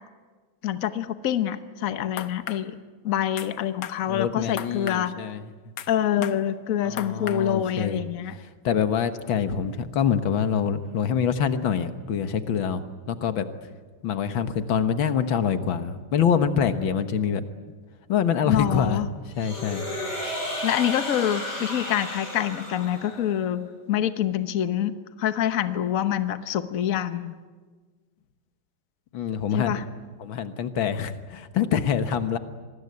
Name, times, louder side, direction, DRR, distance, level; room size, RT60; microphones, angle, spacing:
voice 1, 0.6-2.8 3.0-5.2 5.9-8.3 18.5-19.1 20.6-27.3 29.5-29.8, left 10 dB, 50° left, 11 dB, 1.3 m, -26 dB
sound 1, 2.2-2.6 3.4-3.5 3.8-4.0 4.6-5.0 5.8-5.9 6.2-6.4 7.0-7.4, left 9 dB, 65° left, 1.5 m, -35 dB
voice 2, 4.1-5.5 6.8-8.0 8.6-12.8 13.1-13.5 14.0-17.5 18.1-19.0 19.4-19.8 29.1-29.7 30.2-32.4, left 7 dB, 90° left, 10 dB, 2.1 m, -25 dB
sound 2, 19.3-23.4, left 1 dB, 35° left, 7.0 m, -33 dB
25.5 x 20.5 x 9.6 m, 1.4 s
omnidirectional pair, 2.1 m